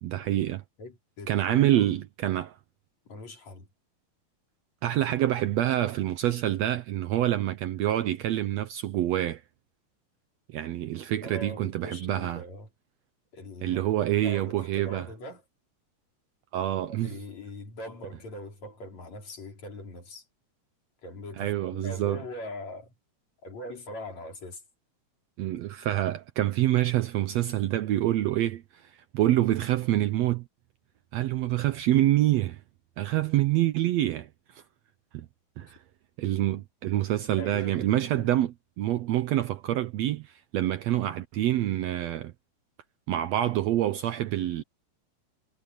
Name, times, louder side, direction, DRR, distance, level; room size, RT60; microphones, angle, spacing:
voice 1, 0.0-0.6 1.3-2.6 4.8-9.4 10.5-12.4 13.6-15.1 16.5-17.1 21.4-22.2 25.4-30.4 31.1-32.6 33.0-34.6 35.1-35.3 35.6-35.8 36.2-42.3 43.1-44.6, right 13 dB, 70° right, 1.7 m, -26 dB
voice 2, 0.8-1.9 3.1-3.7 11.2-12.7 13.3-15.4 16.8-20.3 21.0-22.9 23.4-24.6 35.6-35.7 37.3-38.3, left 1 dB, 60° left, 6.2 m, -42 dB
omnidirectional pair, 3.5 m